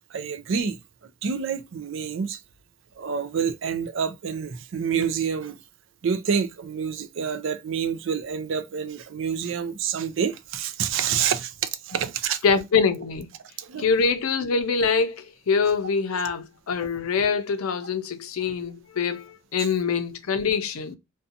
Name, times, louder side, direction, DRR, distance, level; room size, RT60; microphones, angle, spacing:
voice 1, 0.1-0.8 1.2-2.4 3.0-5.6 6.0-12.4 13.6-13.9, right 7 dB, 60° right, 0.4 m, -27 dB
voice 2, 12.4-13.3 13.8-21.0, left 5 dB, 80° left, 0.5 m, -24 dB
2.5 x 2.2 x 2.6 m
head